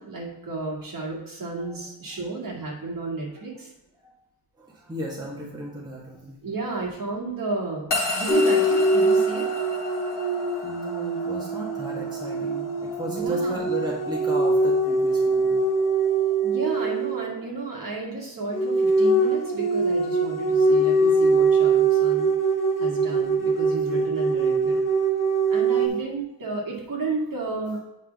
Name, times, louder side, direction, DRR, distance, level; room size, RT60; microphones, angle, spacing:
voice 1, 0.0-3.7 6.4-9.5 13.0-13.6 16.4-22.3 22.8-24.8 25.5-27.8, right 3 dB, 50° right, -2 dB, 2.2 m, -32 dB
voice 2, 4.6-6.4 10.5-15.6 21.0-21.2 22.4-22.5 22.8-22.9 25.0-25.1 25.4-25.5, right 1 dB, 10° right, -4 dB, 1.5 m, -36 dB
sound 1, 7.9-18.2, left 2 dB, 70° left, 2.2 m, -35 dB
sound 2, 8.3-17.3 18.5-25.9, right 3 dB, 45° left, 1.5 m, -22 dB
8.3 x 5.7 x 3.5 m, 0.90 s
wide cardioid pair, 145°, 43 cm